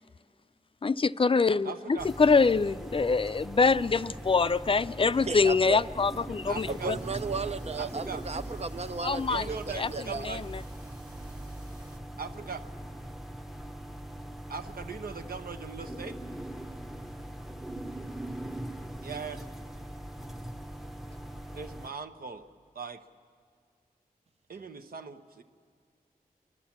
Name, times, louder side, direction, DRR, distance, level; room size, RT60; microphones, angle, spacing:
voice 1, 0.8-6.7 9.0-9.5 9.8-10.6, left 4 dB, 35° left, 14 dB, 0.4 m, -25 dB
voice 2, 1.6-2.1 6.5-6.9 7.8-8.2 9.2-10.4 12.2-12.6 14.5-16.2 19.0-19.5 21.5-22.4 22.7-23.0 24.5-25.4, right 5 dB, 75° right, 7 dB, 0.9 m, -40 dB
sound 1, 2.0-21.9, right 1 dB, ahead, 0.7 m, -41 dB
voice 3, 5.0-5.8 6.7-10.3, right 4 dB, 45° right, 12 dB, 0.5 m, -35 dB
sound 2, 6.6-12.0, right 2 dB, 25° right, 1.7 m, -46 dB
30.0 x 12.0 x 7.2 m, 2.1 s
cardioid pair, 60°, 15 cm